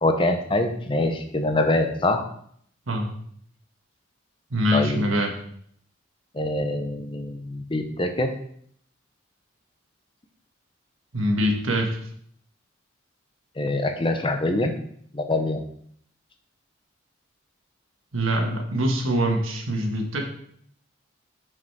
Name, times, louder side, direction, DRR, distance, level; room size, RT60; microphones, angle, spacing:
voice 1, 0.0-2.2 4.7-5.0 6.3-8.3 13.6-14.7 15.1-15.6, left 2 dB, 25° left, 6 dB, 0.6 m, -24 dB
voice 2, 4.5-5.3 11.1-12.0 18.1-20.2, equal, 80° right, 3 dB, 1.3 m, -24 dB
6.0 x 5.1 x 4.6 m, 0.64 s
head